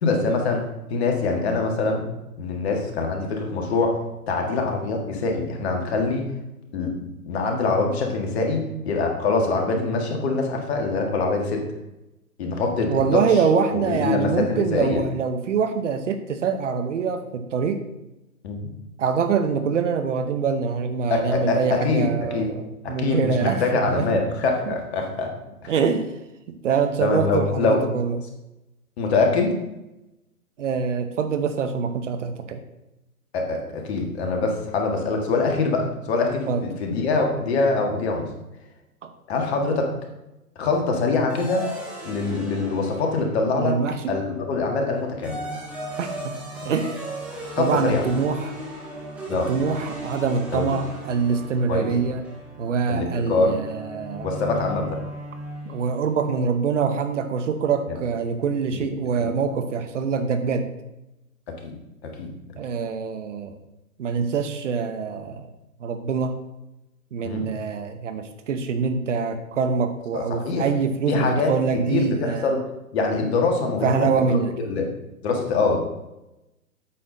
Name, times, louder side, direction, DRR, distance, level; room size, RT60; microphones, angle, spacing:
voice 1, 0.0-0.6 0.9-2.0 2.4-6.2 6.7-11.6 12.4-13.2 13.7-15.0 18.4-18.7 21.1-22.5 22.8-25.3 25.6-25.7 27.0-27.8 29.0-29.6 33.3-38.3 39.3-39.9 40.6-41.7 42.0-43.8 44.1-45.4 47.6-48.0 49.3-49.5 50.5-50.7 51.7-51.9 52.9-53.6 54.2-55.0 57.9-58.0 58.7-58.8 59.2-59.3 61.5-61.7 62.0-62.3 67.2-67.5 70.1-70.7 71.1-71.5 71.9-72.6 72.9-74.4 74.6-74.9 75.2-75.8, left 3 dB, 45° left, 2 dB, 1.7 m, -24 dB
voice 2, 12.9-17.8 19.0-24.1 24.7-24.8 25.7-26.1 26.5-28.2 30.6-32.6 36.5-36.6 39.0-39.1 43.5-44.0 46.0-46.3 46.6-47.0 47.6-48.6 49.3-52.2 52.6-54.3 55.7-60.7 62.6-63.6 64.0-65.5 65.8-66.4 67.1-72.6 73.8-74.5, right 5 dB, 50° right, 9 dB, 0.9 m, -24 dB
sound 1, 41.3-43.9 44.9-56.1, right 1 dB, 5° right, 0.6 m, -37 dB
8.5 x 6.0 x 3.8 m, 0.94 s
hypercardioid pair, 130°, 46 cm